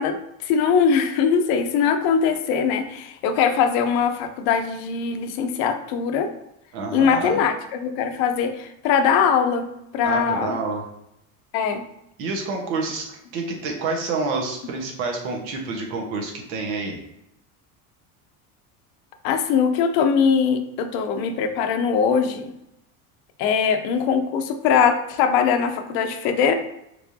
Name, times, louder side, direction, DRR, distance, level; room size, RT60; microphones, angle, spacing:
voice 1, 0.0-6.3 6.9-10.6 11.5-11.8 19.2-22.5 23.4-26.5, left 6 dB, 60° left, 7 dB, 0.7 m, -21 dB
voice 2, 6.7-7.4 10.0-10.8 12.2-17.0, right 3 dB, 75° right, 1 dB, 1.3 m, -28 dB
4.5 x 3.4 x 2.7 m, 0.82 s
supercardioid pair, 130°, 42 cm